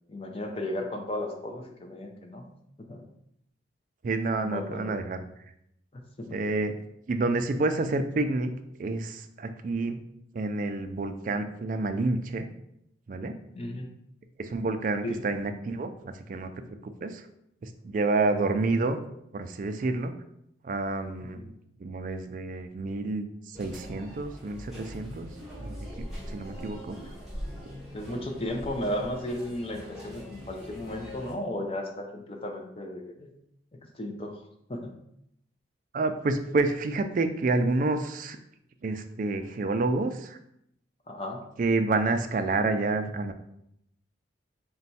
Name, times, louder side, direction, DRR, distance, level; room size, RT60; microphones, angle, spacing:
voice 1, 0.1-2.5 2.8-3.0 4.4-5.0 5.9-6.4 9.6-9.8 13.5-13.9 15.0-15.2 21.3-21.5 26.5-26.6 27.0-27.1 27.9-33.3 33.7-34.4 34.7-35.0 41.1-41.4, left 1 dB, 30° left, 3 dB, 0.5 m, -35 dB
voice 2, 4.0-5.2 6.3-6.7 7.1-8.5 8.8-10.0 10.3-12.5 13.1-13.3 14.4-15.9 16.3-16.5 17.0-17.2 17.6-19.0 19.3-20.1 20.6-21.5 21.8-25.3 25.6-25.8 26.3-27.0 35.9-38.4 38.8-40.4 41.6-43.3, right 3 dB, 45° right, 8 dB, 0.3 m, -28 dB
sound 1, 23.5-31.3, equal, ahead, 0.8 m, -42 dB
4.2 x 2.3 x 4.1 m, 0.77 s
head